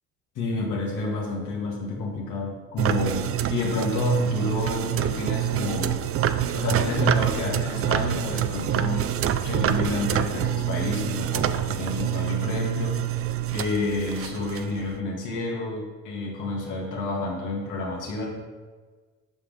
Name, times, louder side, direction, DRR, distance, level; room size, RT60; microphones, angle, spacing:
voice 1, 0.4-6.0 6.5-9.1 9.4-13.0 13.5-18.3, left 2 dB, 85° left, -2 dB, 2.2 m, -29 dB
sound 1, 2.8-15.0, right 11 dB, 50° right, 0.5 m, -26 dB
8.6 x 5.7 x 3.6 m, 1.4 s
cardioid pair, 90°, 30 cm